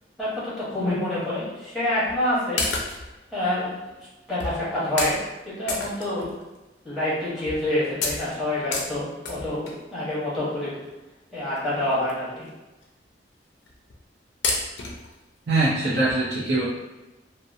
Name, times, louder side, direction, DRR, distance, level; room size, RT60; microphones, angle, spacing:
voice 1, 0.7-2.6 3.3-3.9 4.3-5.1 5.4-6.3 6.8-10.7 11.3-12.5, left 1 dB, ahead, -10 dB, 1.0 m, -27 dB
sound 1, 2.1-2.2 2.6-3.2 3.9-4.0 4.4-4.6 5.0-5.2 5.7-6.6 7.0-7.1 7.5-7.7 8.0-9.9 10.8-10.9 11.6-11.7 11.9-12.1 12.5-12.6 12.8-12.9 13.7-14.0 14.4-15.1 15.6-15.7 16.1-16.2, left 3 dB, 90° left, 0.5 m, -29 dB
voice 2, 15.5-16.6, right 2 dB, 75° right, -9 dB, 0.6 m, -22 dB
2.7 x 2.1 x 2.5 m, 1.1 s
head